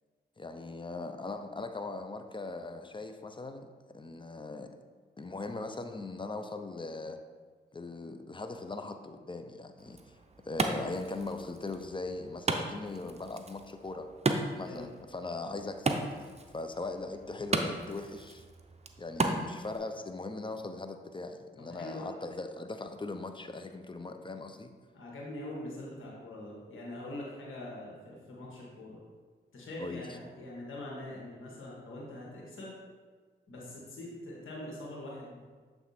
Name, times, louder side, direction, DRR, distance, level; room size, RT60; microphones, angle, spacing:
voice 1, 0.4-4.8 5.2-7.2 7.7-10.0 10.4-14.1 14.6-16.0 16.5-18.4 19.0-24.7 29.8-30.1, left 3 dB, 25° left, 7 dB, 0.6 m, -40 dB
Wood, 9.8-19.8, right 3 dB, 30° right, 0.7 m, -36 dB
voice 2, 21.6-22.1 24.9-29.0 29.5-32.7 33.5-35.4, left 1 dB, 75° left, -4 dB, 1.8 m, -43 dB
7.4 x 3.4 x 4.2 m, 1.5 s
supercardioid pair, 45°, 20 cm